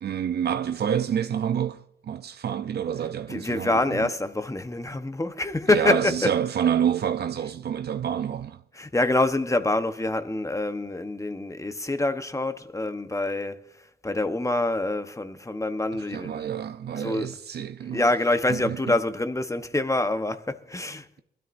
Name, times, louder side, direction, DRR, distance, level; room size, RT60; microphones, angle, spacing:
voice 1, 0.0-4.1 5.7-8.6 15.9-18.1 18.5-19.0, right 9 dB, 75° right, 0.5 m, -28 dB
voice 2, 3.3-6.3 8.8-13.6 14.0-16.5 17.0-17.4 17.9-21.1, left 2 dB, 20° left, 1.0 m, -26 dB
23.0 x 12.5 x 2.6 m
cardioid pair, 65°, 17 cm